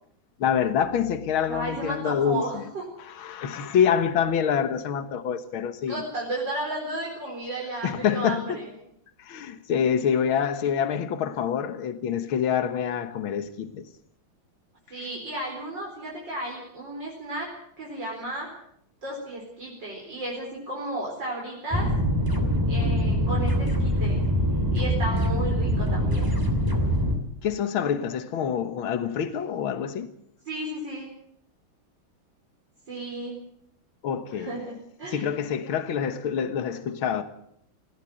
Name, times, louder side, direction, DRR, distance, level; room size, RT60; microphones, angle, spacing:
voice 1, 0.4-2.6 3.1-6.0 7.8-8.6 9.2-13.9 27.4-30.1 34.0-34.6 35.0-37.2, left 8 dB, 80° left, 2.1 m, -26 dB
voice 2, 1.5-2.8 5.9-8.7 10.3-10.4 14.9-17.5 17.8-18.5 19.0-21.9 22.7-24.2 24.7-26.3 30.5-31.1 32.9-33.4 34.3-34.7 35.0-35.3, right 1 dB, 60° right, 5.1 m, -33 dB
sound 1, 21.7-27.2, equal, 10° right, 2.9 m, -24 dB
19.5 x 15.5 x 9.2 m
omnidirectional pair, 2.3 m